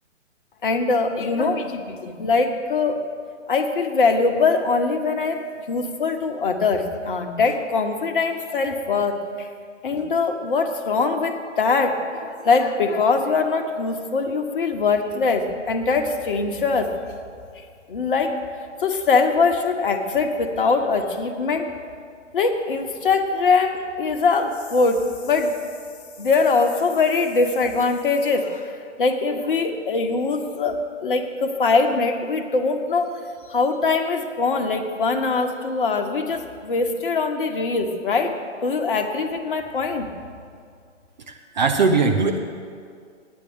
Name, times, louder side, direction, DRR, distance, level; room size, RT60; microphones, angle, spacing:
voice 1, 0.6-3.0 3.5-9.5 9.8-16.9 17.9-18.3 18.8-21.7 22.3-25.5 26.2-28.7 29.0-30.8 31.0-33.1 33.5-38.3 38.6-40.1, left 4 dB, 45° left, 5 dB, 1.1 m, -22 dB
voice 2, 41.3-42.4, right 4 dB, 40° right, 4 dB, 0.7 m, -20 dB
9.9 x 9.1 x 6.5 m, 2.2 s
figure-of-eight pair, 130°, 36 cm